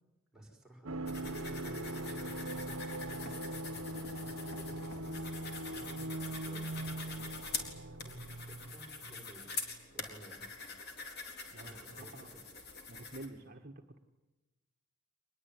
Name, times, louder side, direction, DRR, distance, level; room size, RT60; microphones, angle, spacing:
voice 1, 0.3-7.3 7.8-9.5 9.9-10.5 11.6-12.5, right 1 dB, 5° right, -1 dB, 6.0 m, -55 dB
sound 1, 0.9-9.4 9.6-9.7, right 1 dB, 75° right, 1.1 m, -41 dB
sound 2, 1.1-13.3, left 4 dB, 45° left, 4.1 m, -45 dB
voice 2, 11.5-12.3 12.9-14.0, right 2 dB, 40° right, 4 dB, 1.5 m, -49 dB
26.0 x 21.0 x 9.6 m, 1.1 s
head